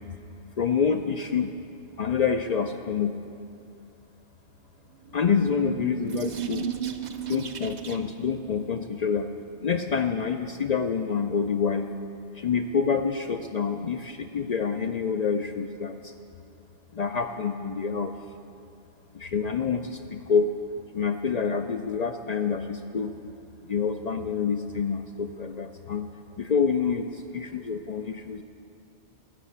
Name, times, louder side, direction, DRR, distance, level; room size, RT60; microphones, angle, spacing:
voice 1, 0.6-1.6 2.0-3.2 5.1-6.7 7.3-9.3 9.6-11.9 12.4-16.1 16.9-18.1 19.1-20.5 20.9-23.1 23.7-26.1 26.4-28.4, left 6 dB, 55° left, 7 dB, 0.4 m, -27 dB
sound 1, 5.0-8.2, right 9 dB, 50° right, 0.6 m, -34 dB
12.5 x 6.7 x 9.5 m, 2.5 s
omnidirectional pair, 1.2 m